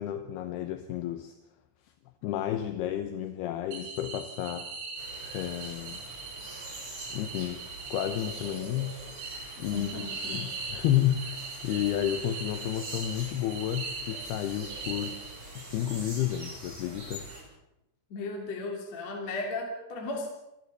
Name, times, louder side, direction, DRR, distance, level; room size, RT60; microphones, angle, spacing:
voice 1, 0.0-1.4 2.2-4.7 5.3-6.0 7.1-7.6 7.9-9.0 9.6-15.2 15.6-17.3, left 11 dB, 75° left, 8 dB, 2.5 m, -31 dB
sound 1, 3.7-15.7, right 4 dB, 70° right, 6.0 m, -40 dB
sound 2, 5.0-17.4, right 1 dB, 35° right, 7.6 m, -45 dB
voice 2, 9.7-10.5 18.1-20.3, left 2 dB, 40° left, 1 dB, 3.5 m, -36 dB
29.5 x 13.0 x 6.8 m, 0.90 s
omnidirectional pair, 5.5 m